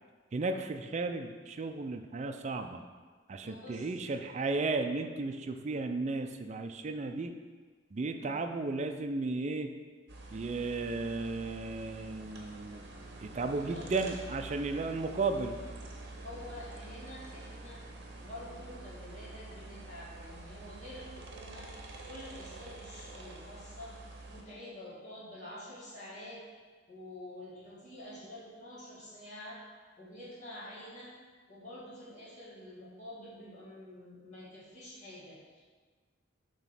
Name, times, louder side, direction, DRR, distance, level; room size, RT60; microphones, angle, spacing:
voice 1, 0.3-2.8 3.3-7.3 7.9-9.7 10.3-12.8 13.2-15.6, right 3 dB, 35° right, 6 dB, 0.4 m, -34 dB
voice 2, 3.4-3.8 8.1-8.4 13.7-13.9 16.2-17.9 18.2-24.0 24.3-26.4 26.9-29.6 30.0-31.1 31.5-35.7, left 1 dB, 35° left, -7 dB, 1.8 m, -48 dB
sound 1, 10.1-24.4, right 2 dB, 55° right, 0.9 m, -47 dB
7.3 x 3.0 x 5.8 m, 1.5 s
head